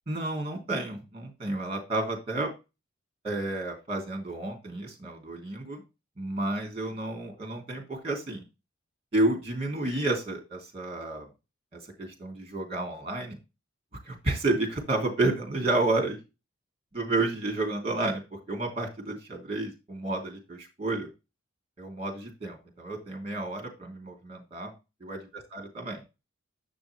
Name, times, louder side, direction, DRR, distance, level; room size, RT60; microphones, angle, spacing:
voice 1, 0.1-2.5 3.2-5.8 6.2-8.4 9.1-11.3 11.7-13.4 14.0-16.2 16.9-21.1 21.8-24.7 25.0-26.0, right 2 dB, 30° right, 2 dB, 2.8 m, -31 dB
7.6 x 6.1 x 3.3 m, 0.26 s
head